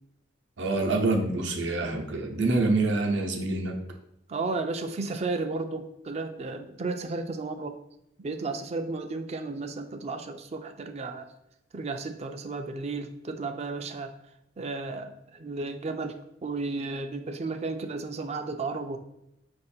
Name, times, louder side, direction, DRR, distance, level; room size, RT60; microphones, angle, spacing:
voice 1, 0.6-3.8, right 2 dB, 70° right, 3 dB, 0.7 m, -26 dB
voice 2, 4.3-7.8 8.2-11.3 11.7-14.1 14.6-19.0, right 3 dB, 35° right, 7 dB, 0.4 m, -33 dB
5.0 x 2.5 x 4.2 m, 0.82 s
head